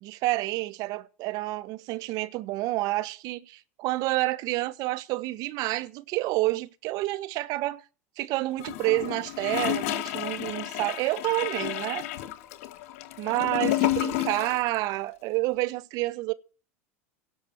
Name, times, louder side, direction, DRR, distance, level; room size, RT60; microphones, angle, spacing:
voice 1, 0.0-7.8 8.2-12.0 13.2-16.3, right 19 dB, 55° right, 1.3 m, -29 dB
Gurgling / Toilet flush, 8.6-14.7 14.9-15.0, left 15 dB, 70° left, 1.6 m, -30 dB
17.5 x 6.1 x 8.7 m
hypercardioid pair, 105°, 8 cm